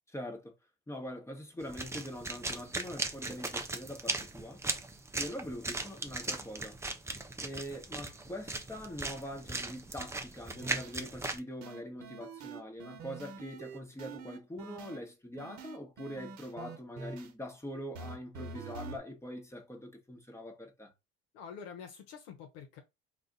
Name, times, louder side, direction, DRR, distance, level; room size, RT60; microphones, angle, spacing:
voice 1, 0.1-0.5 0.9-4.7 5.2-6.8 7.4-20.9, equal, 10° left, 1.1 m, -43 dB
sound 1, 1.6-11.4, right 2 dB, 10° right, 0.5 m, -38 dB
sound 2, 10.6-11.0 11.6-15.0 15.4-17.3 17.9-19.0, right 4 dB, 60° right, 1.0 m, -45 dB
voice 2, 21.3-22.8, left 6 dB, 75° left, 0.9 m, -47 dB
2.4 x 2.4 x 3.9 m
hypercardioid pair, 85°, 31 cm